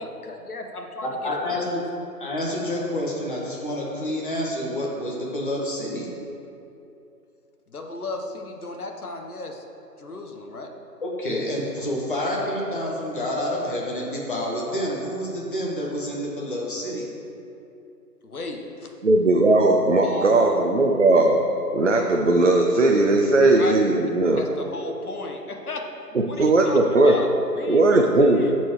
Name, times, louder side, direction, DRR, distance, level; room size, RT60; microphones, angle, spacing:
voice 1, 0.0-1.1 1.6-1.7 7.7-9.6 10.0-10.7 18.2-18.9 20.0-20.9 23.5-23.7 24.3-25.8 26.1-28.5, left 2 dB, 65° left, 3 dB, 1.1 m, -35 dB
voice 2, 1.0-1.8 2.2-6.1 11.0-17.0, left 1 dB, 30° left, -4 dB, 1.2 m, -28 dB
voice 3, 19.0-21.4 21.7-24.4 26.4-27.1 27.7-28.5, right 2 dB, 50° right, 1 dB, 0.5 m, -18 dB
13.0 x 4.5 x 3.1 m, 2.8 s
figure-of-eight pair, 155°, 49 cm